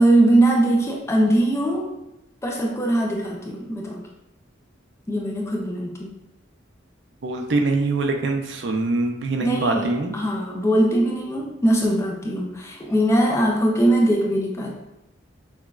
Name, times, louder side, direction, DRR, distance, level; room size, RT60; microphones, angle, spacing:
voice 1, 0.0-1.9 2.4-4.0 5.1-6.1 9.4-14.8, right 1 dB, 15° left, -1 dB, 0.4 m, -21 dB
voice 2, 7.2-10.1, right 3 dB, 60° right, 3 dB, 0.5 m, -23 dB
5.8 x 2.2 x 2.3 m, 0.90 s
head